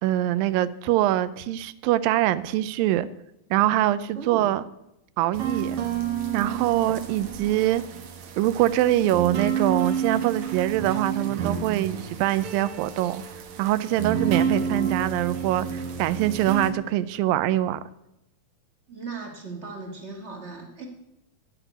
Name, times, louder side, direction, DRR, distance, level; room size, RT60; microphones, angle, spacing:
voice 1, 0.0-3.1 3.5-4.6 5.2-5.8 6.3-7.8 8.4-13.2 13.6-17.8, right 14 dB, 85° right, 15 dB, 2.3 m, -24 dB
voice 2, 4.1-4.5 18.9-20.9, right 4 dB, 30° right, 1 dB, 1.4 m, -37 dB
sound 1, 5.3-16.7, right 7 dB, 65° right, 2.2 m, -30 dB
12.0 x 5.9 x 9.1 m, 0.86 s
omnidirectional pair, 4.0 m